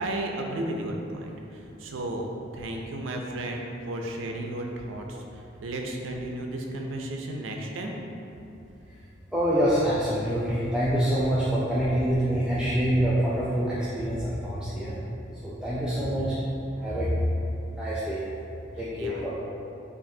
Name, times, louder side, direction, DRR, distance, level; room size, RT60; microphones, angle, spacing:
voice 1, 0.0-7.9 19.0-19.2, right 1 dB, 85° right, 1 dB, 0.5 m, -34 dB
voice 2, 9.3-15.0 15.4-16.4 16.8-17.3 17.8-18.2 18.8-19.4, equal, 5° right, -10 dB, 0.3 m, -26 dB
4.8 x 2.5 x 2.6 m, 2.8 s
head